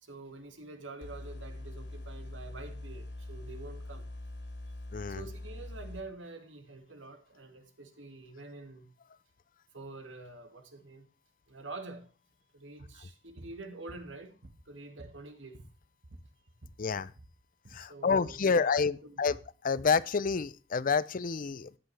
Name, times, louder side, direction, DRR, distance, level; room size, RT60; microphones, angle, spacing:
voice 1, 0.0-4.1 5.1-8.9 9.7-11.1 11.5-12.1 12.5-14.3 14.7-15.6 17.8-19.3, right 3 dB, 85° right, 2.1 m, -47 dB
sound 1, 1.0-6.0, left 1 dB, 70° left, 2.5 m, -43 dB
voice 2, 4.9-5.2 16.8-17.1 17.7-19.4 19.6-21.8, left 5 dB, 45° left, 0.5 m, -28 dB
sound 2, 12.8-13.0 13.4-13.6 13.9-14.7 15.0-16.8 17.1-17.4 17.6-17.8 18.3-18.5 18.8-20.5, right 1 dB, 65° right, 1.4 m, -51 dB
13.5 x 9.7 x 3.3 m
head